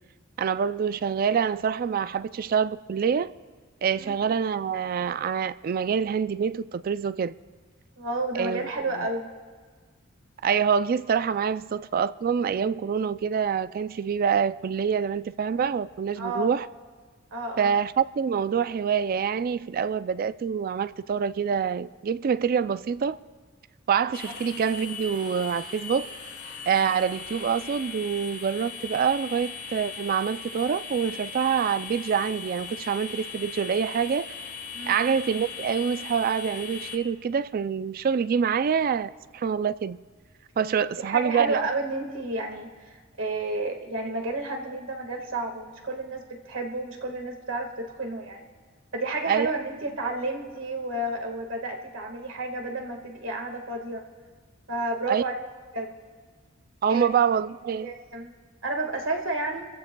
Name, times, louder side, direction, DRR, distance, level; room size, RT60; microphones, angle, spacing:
voice 1, 0.4-3.3 3.8-7.3 8.3-8.7 10.4-16.7 17.6-23.2 23.9-26.1 26.7-34.3 34.9-40.0 40.6-41.7 49.3-49.5 55.1-55.2 56.8-57.9, right 7 dB, 45° right, 0.3 m, -26 dB
voice 2, 8.0-9.3 16.2-16.5 17.3-17.7 34.7-34.9 41.0-48.5 48.9-54.0 54.7-55.4 55.7-55.9 56.9-57.1 57.8-58.3 58.6-59.7, right 2 dB, 75° right, 1.7 m, -31 dB
sound 1, 24.1-36.9, left 5 dB, 55° left, 1.6 m, -39 dB
30.0 x 15.0 x 2.3 m
head